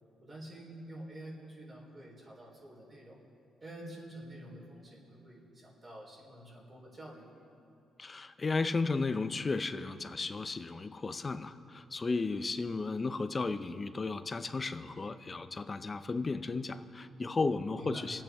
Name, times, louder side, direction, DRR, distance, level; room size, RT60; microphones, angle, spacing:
voice 1, 0.2-3.2 3.6-7.3 17.7-18.1, right 1 dB, 35° right, -5 dB, 3.8 m, -48 dB
voice 2, 8.0-18.2, left 3 dB, 30° left, 11 dB, 0.6 m, -34 dB
25.5 x 8.8 x 3.6 m, 2.7 s
cardioid pair, 90°, 0 cm